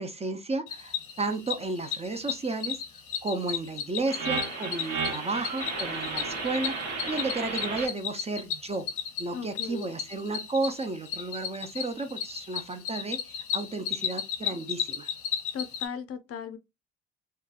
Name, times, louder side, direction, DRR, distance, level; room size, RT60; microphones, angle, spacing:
voice 1, 0.0-2.8 3.2-6.7 7.1-8.9 9.2-15.1, right 3 dB, 20° right, 0.4 m, -33 dB
Cricket, 0.7-15.9, left 8 dB, 90° left, 0.7 m, -35 dB
sound 1, 4.1-7.9, right 4 dB, 70° right, 1.1 m, -33 dB
voice 2, 9.3-9.9 15.5-16.6, left 7 dB, 50° left, 0.4 m, -37 dB
2.8 x 2.2 x 2.3 m
cardioid pair, 90°, 30 cm